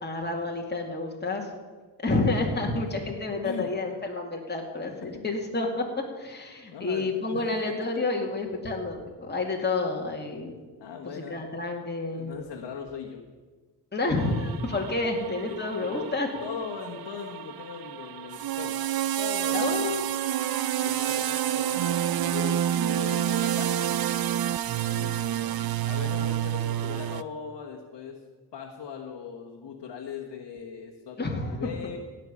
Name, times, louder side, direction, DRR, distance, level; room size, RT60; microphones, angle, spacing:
voice 1, 0.0-1.5 2.0-5.8 6.2-10.6 11.0-12.3 13.9-16.3 19.5-20.1 31.2-31.7, left 2 dB, 25° left, 0 dB, 2.4 m, -29 dB
voice 2, 6.7-7.7 10.8-11.5 12.1-13.2 15.5-16.1 16.4-18.8 19.2-19.9 20.8-23.8 24.9-25.3 25.8-32.0, left 6 dB, 75° left, 0 dB, 1.5 m, -39 dB
sound 1, 14.2-27.2, right 11 dB, 60° right, 0.6 m, -29 dB
17.0 x 5.9 x 8.6 m, 1.4 s
cardioid pair, 55°, 41 cm